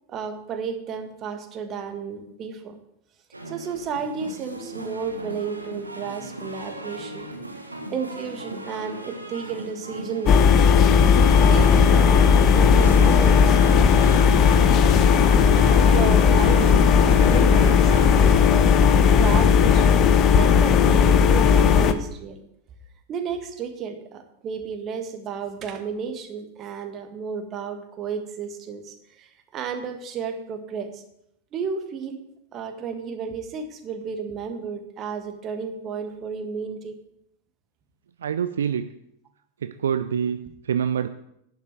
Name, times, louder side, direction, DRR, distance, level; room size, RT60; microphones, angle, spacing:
voice 1, 0.1-2.8 3.5-7.3 7.9-10.7 11.3-13.6 15.9-20.0 20.3-22.4 23.1-31.0 31.5-32.2 32.5-37.0, right 6 dB, 30° right, 6 dB, 1.7 m, -32 dB
sound 1, 3.3-19.4, right 1 dB, 85° right, 1.3 m, -37 dB
sound 2, 10.3-21.9, left 6 dB, 35° left, 0.8 m, -16 dB
voice 2, 38.2-38.9 39.6-41.1, right 8 dB, 65° right, 11 dB, 0.5 m, -26 dB
11.0 x 6.5 x 7.8 m, 0.78 s
figure-of-eight pair, 90°, 0 cm